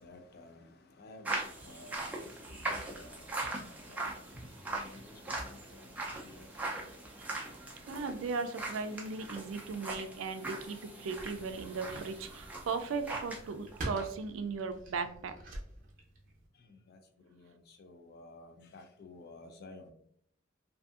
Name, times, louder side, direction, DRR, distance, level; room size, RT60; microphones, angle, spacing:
voice 1, 0.0-4.1 4.6-6.9 7.3-7.4 16.6-19.9, left 2 dB, 55° left, 6 dB, 0.4 m, -54 dB
sound 1, 1.3-13.5 13.7-14.1, right 2 dB, 10° right, 0.4 m, -41 dB
voice 2, 7.9-15.3, right 4 dB, 80° right, 9 dB, 0.3 m, -37 dB
sound 2, 11.1-16.5, right 1 dB, 45° right, 0.7 m, -46 dB
2.6 x 2.5 x 2.4 m, 0.66 s
head